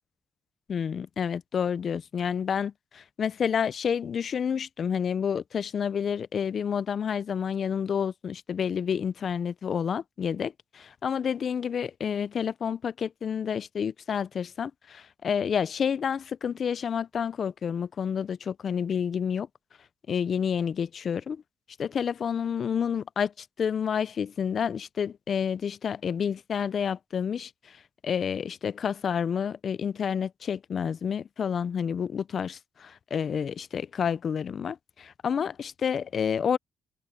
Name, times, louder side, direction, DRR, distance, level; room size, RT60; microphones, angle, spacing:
voice 1, 0.7-19.5 20.1-21.4 21.8-27.8 28.0-36.6, left 7 dB, 50° left, 0.5 m, -29 dB
cardioid pair, 90°, 0 cm